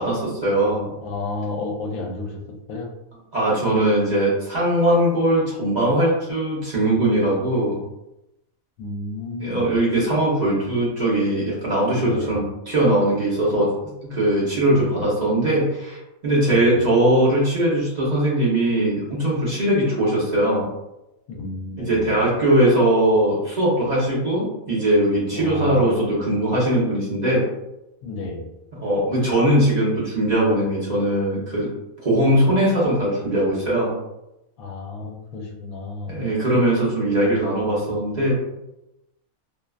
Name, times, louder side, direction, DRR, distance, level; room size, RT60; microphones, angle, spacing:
voice 1, 0.0-0.9 3.3-7.8 9.4-20.7 21.8-27.5 28.8-31.7 32.0-33.9 36.1-38.3, right 1 dB, 50° right, -7 dB, 0.5 m, -20 dB
voice 2, 1.0-2.4 2.7-2.9 8.8-9.8 12.0-12.4 14.6-15.0 16.5-16.8 21.3-22.2 25.3-26.2 28.0-28.5 34.6-36.2, left 2 dB, 75° left, 1 dB, 1.0 m, -32 dB
2.6 x 2.2 x 2.2 m, 0.90 s
omnidirectional pair, 1.5 m